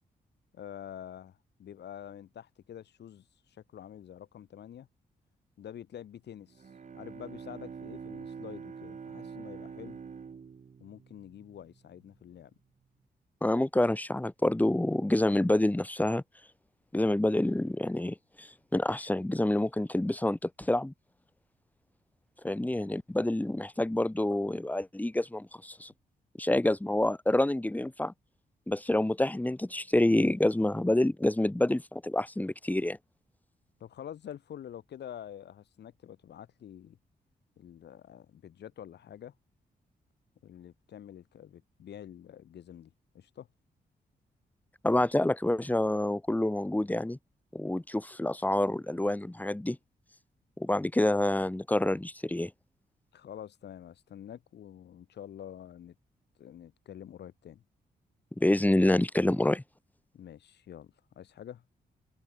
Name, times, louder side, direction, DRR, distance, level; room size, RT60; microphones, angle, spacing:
voice 1, 0.5-3.2 3.7-4.9 5.6-6.6 6.9-10.0 10.8-12.5 33.8-37.0 37.6-39.3 40.4-43.5 53.1-55.9 56.4-57.6 60.1-61.6, left 10 dB, 80° left, 3.1 m, -47 dB
Bowed string instrument, 6.4-12.1, right 6 dB, 45° right, 1.2 m, -45 dB
voice 2, 13.4-16.2 16.9-20.9 22.4-25.9 26.4-28.1 28.7-33.0 44.8-47.2 47.5-49.8 50.6-52.5 58.4-59.6, left 1 dB, 10° left, 1.4 m, -27 dB
cardioid pair, 70°, 17 cm